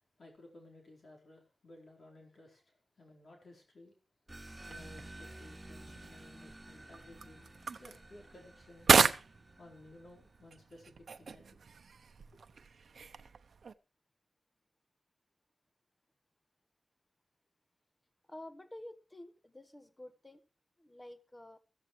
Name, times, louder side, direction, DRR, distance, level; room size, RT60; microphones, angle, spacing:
voice 1, 0.2-3.9 4.7-8.9 9.6-11.6, left 1 dB, 55° left, 0 dB, 4.2 m, -57 dB
sound 1, 4.3-10.5, right 1 dB, 10° right, 3.3 m, -52 dB
sound 2, 4.5-13.7, right 5 dB, 75° right, 0.7 m, -35 dB
voice 2, 18.3-20.4 20.8-21.6, left 1 dB, 20° left, 12 dB, 1.3 m, -50 dB
15.0 x 14.5 x 3.1 m, 0.34 s
wide cardioid pair, 125°, 0 cm